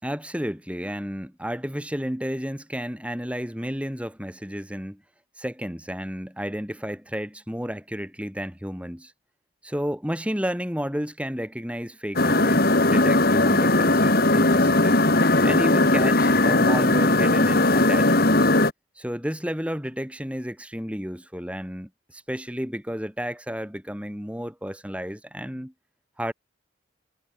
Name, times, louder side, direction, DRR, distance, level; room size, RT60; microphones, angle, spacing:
voice 1, 0.0-5.0 5.4-9.1 9.6-15.0 15.4-18.5 19.0-25.7 26.2-26.3, equal, 5° right, 4.6 m, -32 dB
sound 1, 12.2-18.7, left 2 dB, 50° left, 2.3 m, -19 dB
head